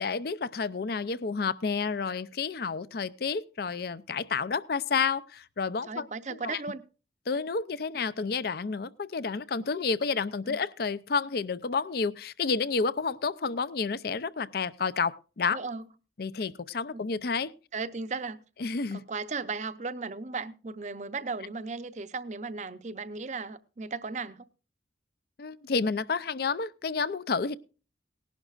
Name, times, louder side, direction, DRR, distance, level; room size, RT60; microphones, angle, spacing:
voice 1, 0.0-6.1 6.4-6.6 7.3-15.6 16.2-17.5 18.6-19.0 25.4-27.6, left 5 dB, 55° left, 0.5 m, -30 dB
voice 2, 5.9-6.8 10.5-10.6 15.5-15.8 16.9-17.0 17.7-18.4 18.9-24.4, right 4 dB, 40° right, 0.6 m, -36 dB
19.0 x 11.0 x 2.4 m
head